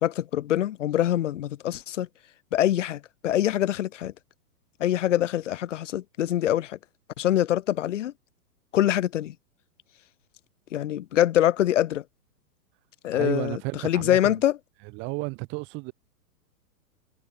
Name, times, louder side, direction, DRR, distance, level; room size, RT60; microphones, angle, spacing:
voice 1, 0.0-2.1 2.5-4.1 4.8-6.8 7.2-8.1 8.7-9.3 10.7-12.0 13.0-13.6 13.8-14.5, left 12 dB, 50° left, 4.5 m, -24 dB
voice 2, 13.1-14.4 14.9-15.9, right 28 dB, 25° right, 4.4 m, -32 dB
hypercardioid pair, 170°, 47 cm